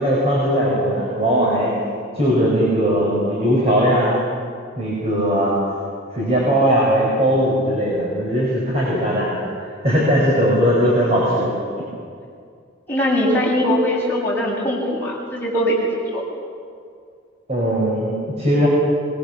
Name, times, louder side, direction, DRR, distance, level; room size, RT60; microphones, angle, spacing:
voice 1, 0.0-1.7 2.1-4.1 4.8-5.5 6.1-9.4 9.8-11.5 17.5-18.7, equal, 35° right, -5 dB, 5.7 m, -19 dB
voice 2, 12.9-15.8 16.1-16.2, equal, 10° left, -4 dB, 6.9 m, -21 dB
25.0 x 22.0 x 7.1 m, 2.3 s
head